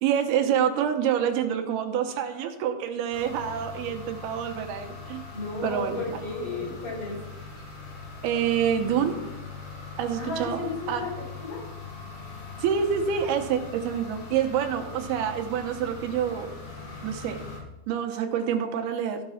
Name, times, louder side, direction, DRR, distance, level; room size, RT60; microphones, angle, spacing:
voice 1, 0.0-5.2 5.6-6.7 8.2-9.3 10.0-10.6 10.9-11.0 12.6-16.5 17.0-17.4 17.9-19.2, right 8 dB, 85° right, 5 dB, 2.9 m, -27 dB
sound 1, 3.1-17.6, left 4 dB, 75° left, 4.1 m, -41 dB
voice 2, 5.3-7.2 10.2-11.6, left 2 dB, 55° left, -5 dB, 6.4 m, -34 dB
14.5 x 5.9 x 5.7 m, 0.97 s
omnidirectional pair, 4.4 m